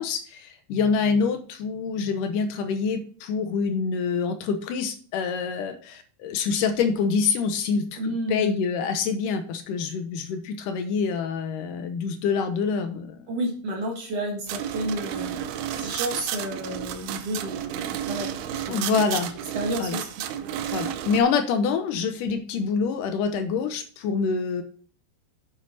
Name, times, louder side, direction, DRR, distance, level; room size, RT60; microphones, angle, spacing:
voice 1, 0.0-13.3 18.7-19.3 19.8-20.0 20.7-24.6, left 5 dB, 75° left, 8 dB, 2.1 m, -26 dB
voice 2, 8.0-8.5 13.3-19.1 19.5-20.3, right 1 dB, 50° right, 0 dB, 2.2 m, -31 dB
sound 1, 14.5-21.2, right 10 dB, 85° right, 2.5 m, -32 dB
7.9 x 7.4 x 4.1 m, 0.44 s
omnidirectional pair, 4.5 m